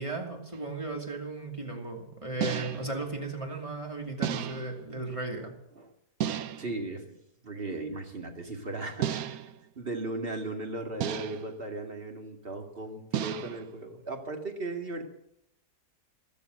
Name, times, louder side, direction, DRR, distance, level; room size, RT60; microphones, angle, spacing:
voice 1, 0.0-5.5, right 2 dB, 20° right, 1 dB, 2.8 m, -36 dB
sound 1, 0.5-0.7 2.4-3.0 4.2-4.8 6.2-6.8 9.0-9.6 11.0-11.6 13.1-13.7, right 9 dB, 70° right, 1.2 m, -33 dB
voice 2, 6.6-7.2 7.4-9.4 9.8-15.1, right 2 dB, 35° right, 4 dB, 2.3 m, -37 dB
13.5 x 13.5 x 7.8 m, 0.74 s
omnidirectional pair, 1.7 m